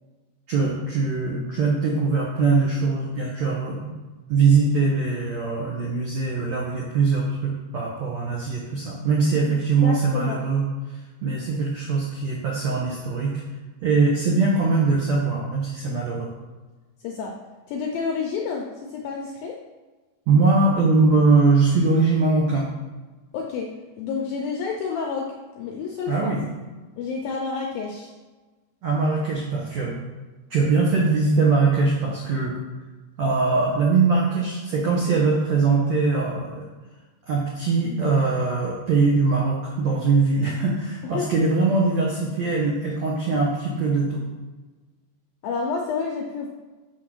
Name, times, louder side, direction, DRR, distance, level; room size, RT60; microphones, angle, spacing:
voice 1, 0.5-3.9 4.3-10.6 11.2-13.4 13.8-16.3 20.3-22.7 26.1-26.5 28.8-30.0 30.5-32.6 33.2-36.6 37.3-44.2, right 4 dB, 85° right, -4 dB, 1.5 m, -21 dB
voice 2, 9.8-10.4 17.0-17.3 17.7-19.6 23.3-23.7 24.0-26.3 27.0-28.1 41.1-41.3 45.4-46.5, left 5 dB, 80° left, 0 dB, 2.1 m, -29 dB
6.4 x 6.3 x 6.1 m, 1.3 s
omnidirectional pair, 5.1 m